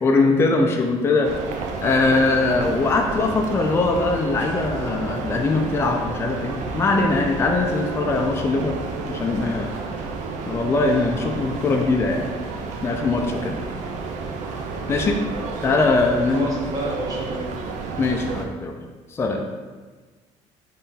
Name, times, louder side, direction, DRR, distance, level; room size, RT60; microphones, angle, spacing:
voice 1, 0.0-1.3 1.8-8.7 9.0-9.7 10.5-12.2 12.8-13.6 14.9-15.2 15.6-16.5 18.0-18.7 19.1-19.4, left 3 dB, 20° left, 2 dB, 0.4 m, -21 dB
sound 1, 1.2-18.5, right 4 dB, 70° right, 0.5 m, -31 dB
voice 2, 16.3-17.5 19.3-19.4, right 1 dB, 30° right, -2 dB, 1.0 m, -29 dB
4.2 x 3.3 x 3.8 m, 1.4 s
cardioid pair, 150°, 13 cm